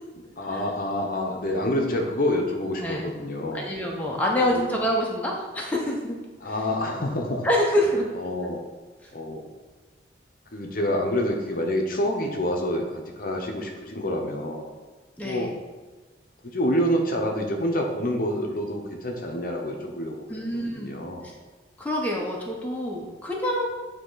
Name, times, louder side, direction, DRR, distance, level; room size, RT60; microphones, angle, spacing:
voice 1, 0.4-3.6 4.4-4.6 6.4-7.5 8.1-8.6 9.1-9.4 10.5-14.7 15.2-15.5 16.4-20.2 20.5-21.3, left 1 dB, 50° left, 1 dB, 0.7 m, -27 dB
voice 2, 3.5-6.2 7.4-8.1 15.2-15.5 20.3-21.0 21.8-23.7, left 1 dB, 10° left, -2 dB, 0.7 m, -26 dB
8.6 x 2.9 x 3.9 m, 1.3 s
head